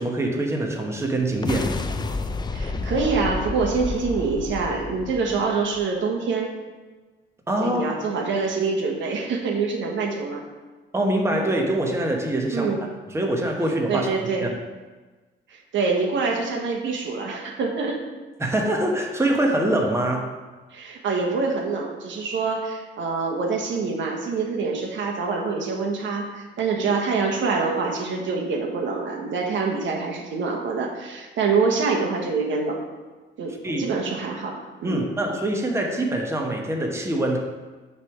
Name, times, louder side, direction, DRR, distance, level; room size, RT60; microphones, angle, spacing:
voice 1, 0.0-1.7 7.5-7.8 10.9-12.7 13.1-14.1 14.4-14.5 18.4-20.3 33.6-33.9 34.8-37.4, right 1 dB, 15° right, 1 dB, 1.1 m, -24 dB
sound 1, 1.3-5.8, left 3 dB, 20° left, 0.4 m, -30 dB
voice 2, 2.5-6.5 7.6-10.4 12.5-12.8 13.9-14.5 15.5-18.0 20.7-32.8 33.4-35.0, right 4 dB, 70° right, 0 dB, 1.2 m, -25 dB
6.7 x 3.4 x 5.8 m, 1.3 s
cardioid pair, 90°, 20 cm